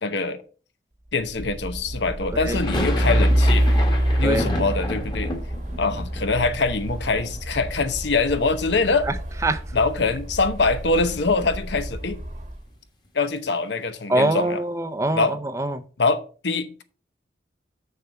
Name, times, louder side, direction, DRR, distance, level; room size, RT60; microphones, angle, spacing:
voice 1, 0.0-0.4 1.1-3.7 4.2-5.3 5.8-9.1 9.7-12.2 13.1-14.6 15.1-15.3 16.0-16.8, left 3 dB, 75° left, 0.9 m, -24 dB
Truck, 1.2-12.6, equal, 40° right, 1.1 m, -26 dB
sound 1, 2.4-8.4 8.6-9.5 9.8-9.9 10.1-12.3, left 1 dB, 25° left, 1.5 m, -33 dB
voice 2, 14.1-15.8, right 2 dB, 15° right, 0.5 m, -24 dB
6.8 x 6.7 x 4.7 m
head